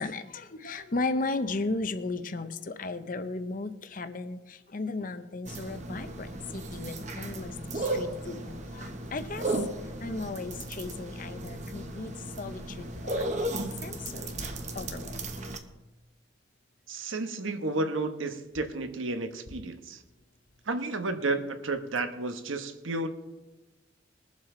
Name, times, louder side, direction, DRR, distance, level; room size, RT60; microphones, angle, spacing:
voice 1, 0.0-9.5 10.0-12.1 12.4-13.3 13.8-14.3 14.7-15.2, left 3 dB, 45° left, 9 dB, 0.6 m, -35 dB
sound 1, 5.4-15.6, right 1 dB, 35° right, 1.0 m, -35 dB
voice 2, 16.9-20.0 20.6-23.1, right 2 dB, 85° right, 7 dB, 1.1 m, -32 dB
21.5 x 7.3 x 3.8 m, 1.1 s
head